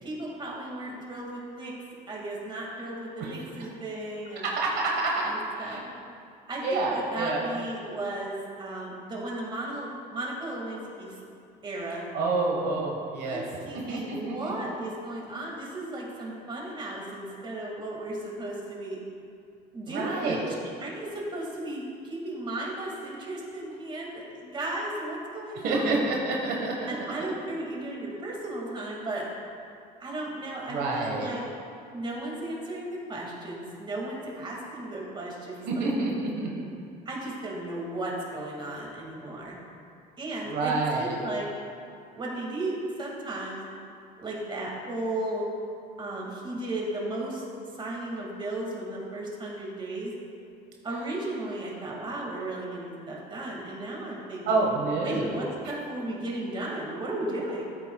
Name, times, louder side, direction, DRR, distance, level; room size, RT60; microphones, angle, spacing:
voice 1, 0.0-1.7 2.1-4.4 5.2-5.8 6.5-11.2 11.6-12.1 13.2-19.0 19.7-20.4 20.8-26.0 26.9-29.3 30.0-31.4 31.9-35.9 37.1-39.6 40.2-40.7 41.0-41.5 42.2-43.6 44.2-45.5 46.0-47.4 47.8-50.1 50.8-54.6 55.0-57.6, right 1 dB, 30° right, -3 dB, 2.1 m, -35 dB
voice 2, 4.4-5.8 6.6-7.4 12.1-13.4 13.7-14.5 19.9-20.4 25.6-26.9 30.7-31.3 35.6-36.5 40.5-41.2 54.5-55.3, right 3 dB, 80° right, -2 dB, 1.4 m, -28 dB
12.5 x 8.5 x 2.3 m, 2.5 s
cardioid pair, 110°, 17 cm